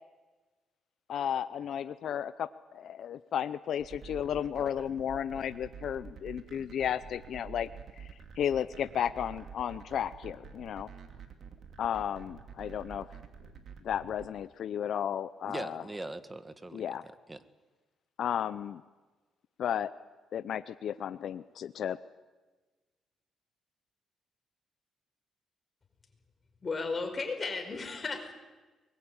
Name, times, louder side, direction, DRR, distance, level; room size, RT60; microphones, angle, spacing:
voice 1, 1.1-7.7 8.0-8.1 8.4-10.9 11.8-13.1 13.8-15.8 16.7-17.0 18.2-18.8 19.6-19.9 20.3-22.0, left 9 dB, 65° left, 13 dB, 0.7 m, -33 dB
sound 1, 3.8-14.3, right 7 dB, 60° right, 2.8 m, -48 dB
voice 2, 15.4-17.4, right 2 dB, 15° right, 11 dB, 1.6 m, -41 dB
voice 3, 26.6-28.3, left 4 dB, 35° left, 5 dB, 5.2 m, -34 dB
23.5 x 21.0 x 8.9 m, 1.3 s
cardioid pair, 90°, 0 cm